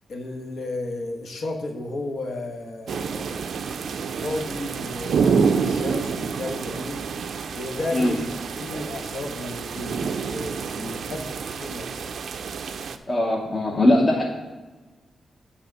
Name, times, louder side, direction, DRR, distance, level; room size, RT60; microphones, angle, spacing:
voice 1, 0.1-3.5 4.2-7.0 7.5-8.2 8.6-12.1, left 2 dB, 60° left, 2 dB, 1.1 m, -33 dB
sound 1, 2.9-13.0, right 5 dB, 65° right, 0.4 m, -28 dB
voice 2, 13.1-14.2, left 1 dB, 25° left, -3 dB, 0.9 m, -20 dB
8.8 x 3.7 x 7.0 m, 1.3 s
wide cardioid pair, 175°, 0 cm